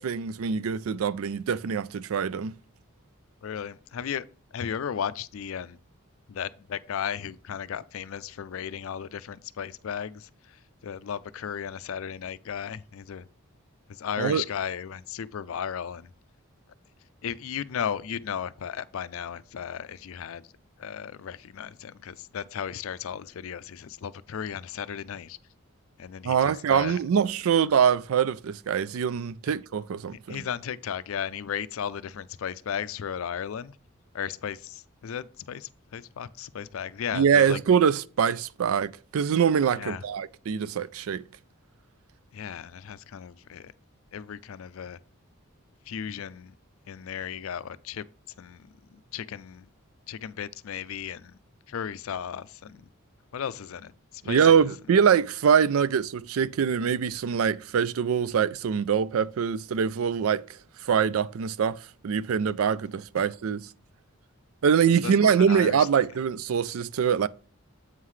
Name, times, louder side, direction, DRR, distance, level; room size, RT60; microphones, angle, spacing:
voice 1, 0.0-2.5 14.2-14.4 26.2-30.4 37.1-41.2 54.3-60.4 60.8-63.7 64.6-67.3, right 7 dB, 75° right, 0.4 m, -24 dB
voice 2, 3.4-4.2 4.5-5.8 6.3-13.3 13.9-16.1 17.2-20.4 20.8-25.4 26.0-27.0 29.5-29.6 30.3-33.8 34.1-37.6 39.7-40.0 42.3-43.7 44.1-45.0 45.9-46.5 46.9-48.1 48.4-49.7 50.1-51.4 51.7-52.9 53.3-54.6 65.0-65.9, left 8 dB, 70° left, 0.4 m, -35 dB
8.0 x 5.6 x 3.1 m
head